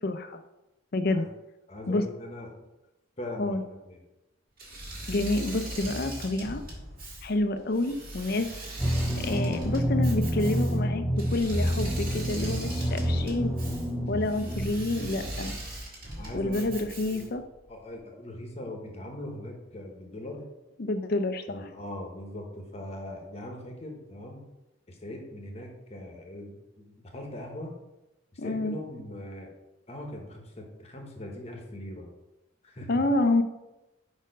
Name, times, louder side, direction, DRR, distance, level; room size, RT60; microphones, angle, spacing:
voice 1, 0.0-0.4 0.9-1.2 1.9-2.1 3.4-3.6 5.1-6.6 7.2-8.5 9.2-13.5 14.1-15.5 16.3-17.4 20.8-21.4 28.4-28.8 32.9-33.4, left 2 dB, 45° left, 9 dB, 0.5 m, -28 dB
voice 2, 1.7-2.5 3.2-4.0 9.3-9.6 13.9-14.3 16.2-16.7 17.1-17.3 17.7-20.5 21.5-24.4 24.9-27.7 28.3-29.5 29.9-32.1 32.6-33.0, left 1 dB, 30° left, 2 dB, 1.0 m, -40 dB
Engine / Mechanisms, 4.6-17.5, right 1 dB, 45° right, 1.7 m, -39 dB
sound 1, 8.8-15.4, equal, 10° right, 0.4 m, -28 dB
5.1 x 4.3 x 5.1 m, 0.97 s
head